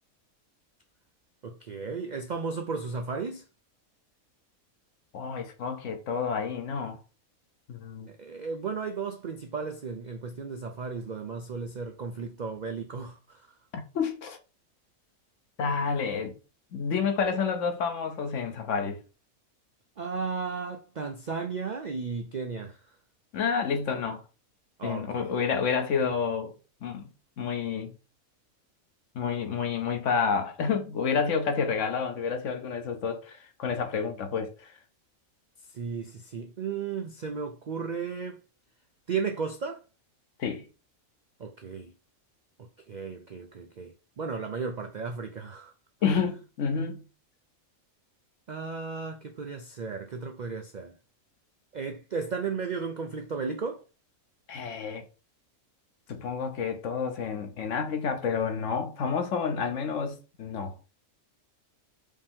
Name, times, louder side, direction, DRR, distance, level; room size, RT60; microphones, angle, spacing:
voice 1, 1.4-3.4 8.1-13.5 20.0-22.8 24.8-25.3 35.7-38.4 39.1-39.8 41.4-41.9 42.6-45.7 46.0-46.2 48.5-50.9 51.7-53.8, right 5 dB, 80° right, 0.4 m, -34 dB
voice 2, 5.1-7.0 7.7-8.1 13.7-14.4 15.6-16.3 16.7-19.0 23.3-24.2 24.8-26.5 26.8-27.1 27.4-27.9 29.1-34.7 40.4-40.7 46.0-47.0 54.5-55.0 56.1-60.7, left 6 dB, 65° left, 1.1 m, -29 dB
4.9 x 2.8 x 3.5 m
omnidirectional pair, 1.5 m